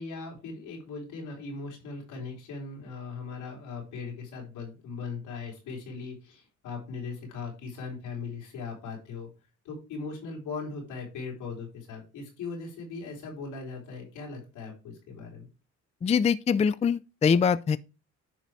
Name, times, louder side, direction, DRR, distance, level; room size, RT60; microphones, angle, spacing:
voice 1, 0.0-9.3 9.6-15.5, left 4 dB, 90° left, 3.9 m, -39 dB
voice 2, 16.0-17.8, left 6 dB, 25° left, 0.4 m, -23 dB
10.5 x 4.0 x 4.7 m
cardioid pair, 90°, 30 cm